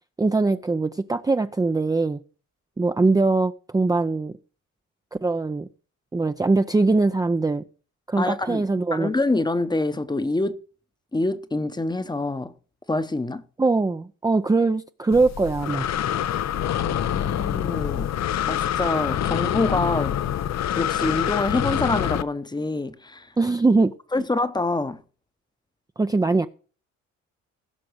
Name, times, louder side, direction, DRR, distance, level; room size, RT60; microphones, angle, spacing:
voice 1, 0.2-2.2 2.8-4.3 5.2-5.7 6.1-7.6 8.1-9.1 13.6-15.9 23.4-23.9 26.0-26.5, right 3 dB, 10° right, 0.5 m, -22 dB
voice 2, 8.2-8.6 8.9-10.6 11.1-12.5 12.9-13.4 16.8-18.1 18.5-20.2 20.7-23.3 24.1-25.0, left 2 dB, 15° left, 0.9 m, -26 dB
Breathing, 15.1-22.2, left 10 dB, 60° left, 0.8 m, -26 dB
16.5 x 6.0 x 6.3 m
cardioid pair, 90°, 30 cm